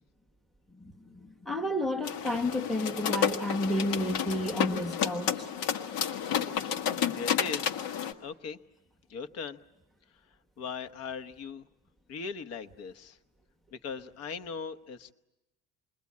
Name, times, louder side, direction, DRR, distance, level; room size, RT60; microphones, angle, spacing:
voice 1, 0.7-5.5, left 1 dB, ahead, 7 dB, 1.0 m, -31 dB
sound 1, 2.0-8.1, left 8 dB, 85° left, 1.7 m, -31 dB
voice 2, 7.1-7.8 8.2-8.6 9.1-9.6 10.3-11.7 12.1-13.2 13.7-15.1, left 5 dB, 50° left, 11 dB, 1.0 m, -39 dB
28.0 x 22.0 x 8.5 m, 0.98 s
cardioid pair, 180°, 32 cm